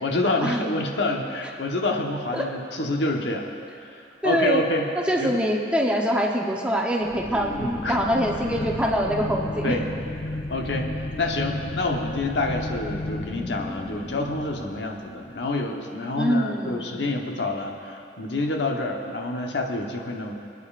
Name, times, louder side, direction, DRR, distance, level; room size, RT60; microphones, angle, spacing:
voice 1, 0.0-3.5 3.8-3.9 4.2-4.9 5.2-5.4 7.6-8.0 9.6-9.8 10.5-20.4, left 2 dB, 85° left, 2 dB, 1.1 m, -27 dB
voice 2, 4.2-4.6 5.0-9.7 16.2-17.0, equal, 5° right, -1 dB, 0.8 m, -24 dB
sound 1, 7.0-15.3, left 2 dB, 20° left, 0.4 m, -33 dB
24.0 x 9.5 x 2.5 m, 2.6 s
head